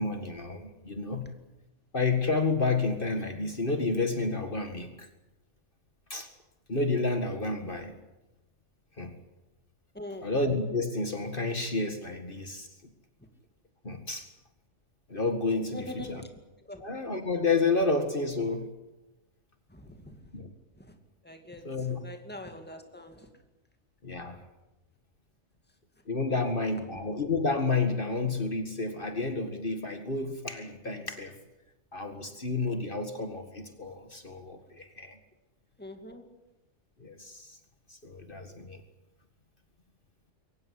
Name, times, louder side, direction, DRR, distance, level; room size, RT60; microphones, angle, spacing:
voice 1, 0.0-1.3 1.9-5.1 6.1-6.3 6.7-8.0 9.0-9.2 10.2-12.7 13.8-14.3 15.1-16.2 16.8-18.7 20.3-20.5 21.6-22.0 24.0-24.4 26.1-31.4 31.9-35.2 37.0-37.6 37.9-38.8, left 3 dB, 50° left, 6 dB, 2.1 m, -30 dB
voice 2, 9.9-10.3 15.7-16.3 16.6-16.9 19.7-20.3 20.7-21.0 21.2-23.3 24.2-24.3 26.3-26.5 35.8-36.4, left 1 dB, 10° left, 5 dB, 2.4 m, -44 dB
23.0 x 18.5 x 9.8 m, 0.99 s
omnidirectional pair, 1.2 m